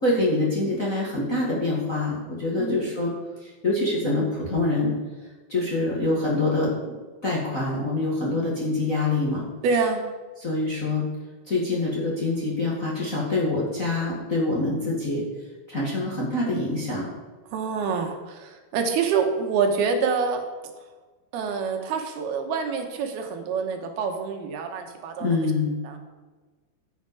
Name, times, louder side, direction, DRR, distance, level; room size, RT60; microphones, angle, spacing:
voice 1, 0.0-3.1 3.4-4.9 5.5-6.7 7.2-9.4 10.4-11.0 11.5-15.3 15.7-17.1 25.2-25.8, left 2 dB, 30° left, -4 dB, 1.7 m, -25 dB
voice 2, 9.6-10.1 17.5-20.5 21.3-25.4 25.8-26.0, right 5 dB, 80° right, 4 dB, 3.1 m, -26 dB
14.0 x 8.1 x 4.9 m, 1.3 s
omnidirectional pair, 4.5 m